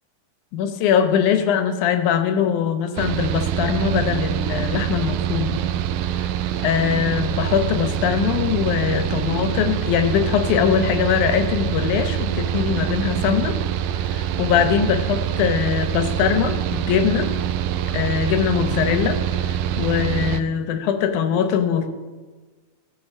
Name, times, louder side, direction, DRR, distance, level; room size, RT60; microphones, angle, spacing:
voice 1, 0.5-5.6 6.2-6.3 6.6-13.6 14.0-17.3 17.9-21.9, left 8 dB, 75° left, 7 dB, 2.3 m, -22 dB
Mechanical fan, 3.0-20.4, right 10 dB, 80° right, 2.0 m, -25 dB
15.0 x 5.7 x 6.3 m, 1.3 s
omnidirectional pair, 3.7 m